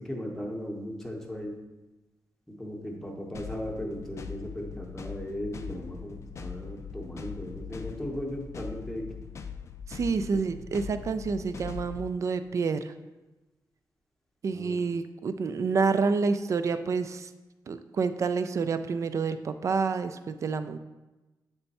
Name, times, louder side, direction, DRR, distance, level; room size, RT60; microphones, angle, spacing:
voice 1, 0.0-1.6 2.5-9.1 10.3-10.4 14.5-14.8, equal, 5° left, 0 dB, 0.8 m, -37 dB
sound 1, 3.3-12.1, left 6 dB, 40° left, 0.4 m, -41 dB
voice 2, 9.9-12.9 14.4-17.3 17.7-20.8, right 5 dB, 45° right, 11 dB, 0.3 m, -28 dB
7.9 x 3.4 x 4.1 m, 1.1 s
wide cardioid pair, 160°, 7 cm